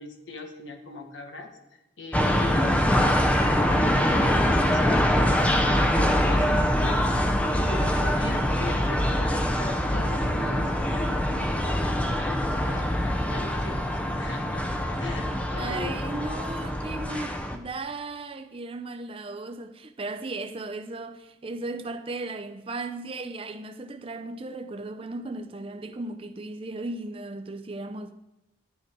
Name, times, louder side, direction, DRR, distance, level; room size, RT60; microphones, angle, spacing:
voice 1, 0.0-14.6 15.0-16.0, left 2 dB, 85° left, 1.5 m, -40 dB
sound 1, 2.1-17.6, equal, 5° left, 0.7 m, -24 dB
voice 2, 15.2-28.1, right 2 dB, 30° right, 0.6 m, -36 dB
11.0 x 9.4 x 4.6 m
head